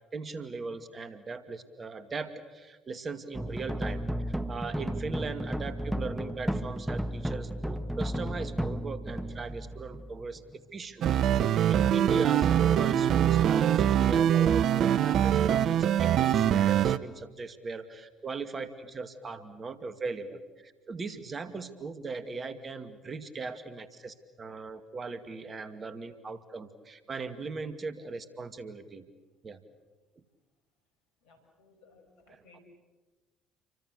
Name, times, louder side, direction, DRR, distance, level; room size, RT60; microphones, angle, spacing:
voice 1, 0.1-10.4 10.7-29.0 29.4-29.6 32.3-32.6, right 4 dB, 35° right, 10 dB, 2.3 m, -39 dB
sound 1, 3.3-10.6, right 1 dB, 5° right, 1.4 m, -34 dB
sound 2, 11.0-17.0, right 10 dB, 55° right, 0.8 m, -23 dB
voice 2, 31.2-32.6, left 3 dB, 70° left, 5 dB, 6.5 m, -60 dB
29.5 x 24.5 x 6.8 m, 1.2 s
hypercardioid pair, 60°, 0 cm